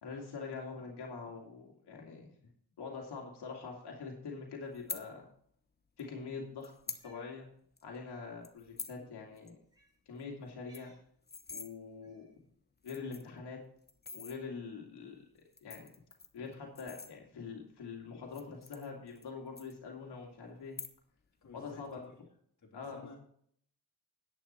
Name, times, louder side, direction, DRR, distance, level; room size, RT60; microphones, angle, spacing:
voice 1, 0.0-2.3 2.8-5.3 6.0-7.5 7.8-9.6 10.1-10.9 11.5-12.3 12.8-13.6 14.1-15.2 15.6-15.9 16.3-20.8 21.5-22.1 22.7-23.2, left 4 dB, 90° left, -1 dB, 2.3 m, -44 dB
sound 1, 4.7-5.0 6.0-6.1 6.6-7.0 7.4-7.5 7.8-8.0 8.4-9.0 9.4-9.5 9.8-9.9 10.2-10.3 10.5-11.7 12.4-12.5 12.8-13.4 13.9-14.4 15.4-17.5 18.2-19.3 19.6-20.2 20.6-21.2 21.5-21.9, left 4 dB, 25° left, 1.0 m, -45 dB
Cat, 6.8-7.3 8.4-8.5 9.7-10.0 10.5-11.1 12.0-12.4, equal, 10° right, 4.4 m, -65 dB
voice 2, 8.8-9.1 21.4-21.8 22.6-23.2, left 4 dB, 50° left, -2 dB, 3.3 m, -53 dB
10.5 x 8.5 x 4.3 m, 0.63 s
wide cardioid pair, 105°, 39 cm